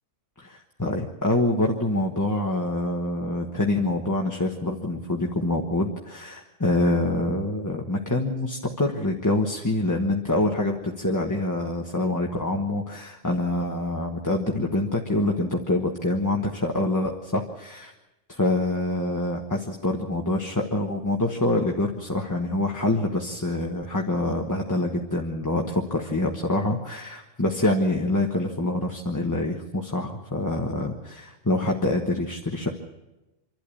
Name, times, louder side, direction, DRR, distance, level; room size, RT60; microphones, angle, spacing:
voice 1, 0.4-17.9 18.4-32.7, left 1 dB, 15° left, 1 dB, 1.3 m, -26 dB
27.0 x 12.0 x 8.5 m, 1.0 s
omnidirectional pair, 1.3 m